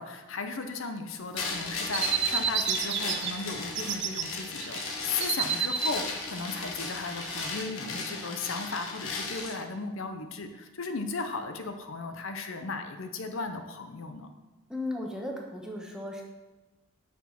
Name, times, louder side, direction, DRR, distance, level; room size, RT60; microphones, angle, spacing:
voice 1, 0.0-14.3, left 4 dB, 65° left, 7 dB, 0.7 m, -36 dB
sound 1, 1.3-9.6, left 4 dB, 85° left, 1.4 m, -36 dB
sound 2, 1.4-3.3 3.6-4.2 4.6-7.5, right 7 dB, 55° right, 0.6 m, -31 dB
voice 2, 14.7-16.2, left 1 dB, 5° right, 0 dB, 1.0 m, -35 dB
6.1 x 6.0 x 5.9 m, 1.1 s
head